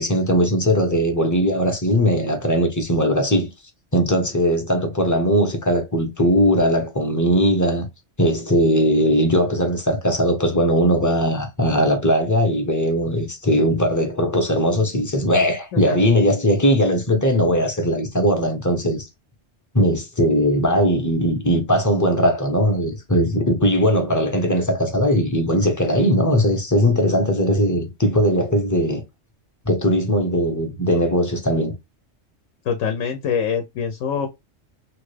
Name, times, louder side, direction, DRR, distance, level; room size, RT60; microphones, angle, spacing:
voice 1, 0.0-3.5 3.9-7.9 8.2-19.1 19.7-29.0 29.6-31.7, equal, 20° left, 0.6 m, -19 dB
voice 2, 32.7-34.3, left 7 dB, 80° left, 1.0 m, -24 dB
3.0 x 2.4 x 3.1 m
omnidirectional pair, 1.3 m